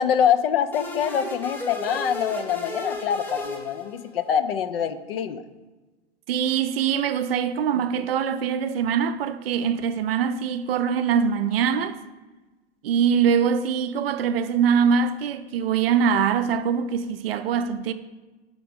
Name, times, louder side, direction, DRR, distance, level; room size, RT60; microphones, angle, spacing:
voice 1, 0.0-5.4, left 8 dB, 60° left, 0.5 m, -24 dB
sound 1, 0.7-4.3, left 1 dB, 5° left, 0.4 m, -34 dB
voice 2, 6.3-12.0 12.8-17.9, right 7 dB, 60° right, 0.5 m, -23 dB
5.9 x 3.7 x 5.1 m
figure-of-eight pair, 105°, 33 cm